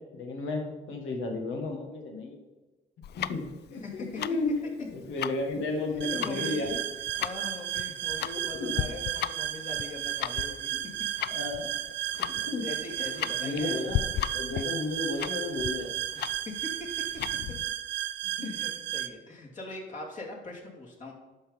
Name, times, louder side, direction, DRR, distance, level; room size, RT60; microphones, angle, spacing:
voice 1, 0.1-2.4 3.2-6.7 8.4-8.9 10.7-10.8 11.3-11.7 12.5-12.7 13.0-14.0 14.3-15.9 18.4-18.5, left 2 dB, 80° left, 3 dB, 1.7 m, -33 dB
Tick-tock, 3.0-17.6, left 11 dB, 55° left, 0.4 m, -36 dB
voice 2, 3.8-4.4 6.1-6.8 7.2-10.9 12.2-13.8 16.4-17.2 18.4-21.1, left 2 dB, 40° left, -3 dB, 2.9 m, -41 dB
sound 1, 6.0-19.1, right 13 dB, 65° right, 0.5 m, -34 dB
11.5 x 4.2 x 5.4 m, 1.2 s
cardioid pair, 90°, 20 cm